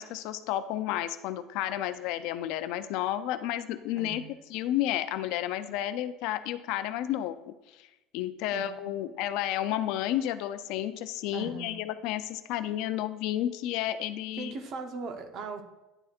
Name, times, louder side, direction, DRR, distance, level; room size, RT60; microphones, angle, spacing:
voice 1, 0.0-4.2 4.5-7.4 7.8-7.9 8.1-14.5, left 12 dB, 70° left, 12 dB, 0.4 m, -31 dB
voice 2, 4.0-4.3 8.5-9.0 11.3-11.8 14.4-15.6, right 4 dB, 50° right, 6 dB, 0.8 m, -39 dB
9.7 x 4.2 x 2.4 m, 1.0 s
supercardioid pair, 125°, 0 cm